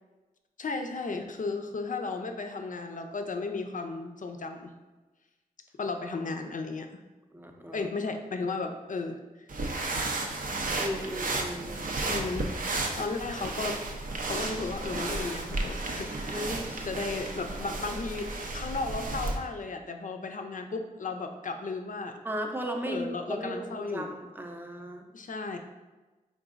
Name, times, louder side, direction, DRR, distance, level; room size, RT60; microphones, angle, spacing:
voice 1, 0.6-4.7 5.8-6.9 7.7-9.2 12.1-12.5 13.0-13.8 14.2-16.5 16.8-22.2 22.9-24.2 25.1-25.6, left 3 dB, 55° left, 5 dB, 0.4 m, -34 dB
voice 2, 7.3-7.9 10.7-11.9 16.3-16.9 22.2-25.0, equal, 15° right, 3 dB, 0.5 m, -36 dB
sound 1, 9.5-19.4, right 2 dB, 60° right, 0.5 m, -33 dB
3.9 x 3.6 x 2.4 m, 1.2 s
cardioid pair, 40°, 16 cm